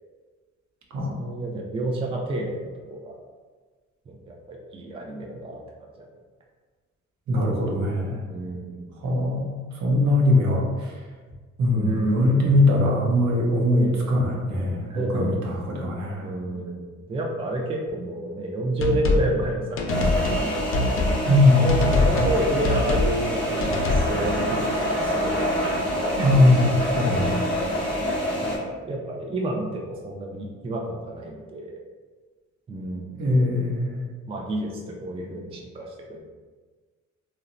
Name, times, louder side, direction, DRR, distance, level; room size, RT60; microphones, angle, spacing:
voice 1, 1.2-3.2 4.1-5.6 6.0-6.1 8.2-8.9 11.7-12.6 13.7-14.1 14.9-15.4 16.1-16.8 17.1-20.6 21.4-25.4 26.0-26.5 27.0-27.8 28.5-31.8 32.7-33.2 34.3-36.2, right 1 dB, 20° right, 0 dB, 0.4 m, -30 dB
voice 2, 7.3-8.2 9.0-9.5 9.8-10.9 11.6-16.2 21.2-21.7 26.2-27.4 33.2-34.0, left 1 dB, 70° right, -2 dB, 0.7 m, -21 dB
sound 1, 18.8-19.3 19.8-20.5 20.7-21.2 21.7-22.4 22.6-23.1 23.6-24.1, left 2 dB, 45° left, 0.5 m, -23 dB
sound 2, 19.9-28.6, equal, 5° left, 0.7 m, -26 dB
2.9 x 2.1 x 2.4 m, 1.4 s
cardioid pair, 90°, 30 cm